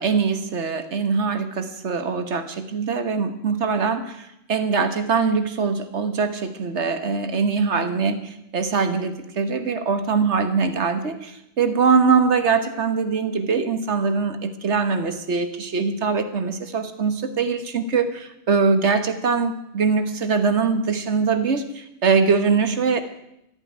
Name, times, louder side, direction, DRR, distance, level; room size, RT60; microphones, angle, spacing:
voice 1, 0.0-23.0, right 5 dB, 85° right, 9 dB, 1.7 m, -22 dB
13.5 x 9.7 x 9.5 m, 0.83 s
omnidirectional pair, 1.1 m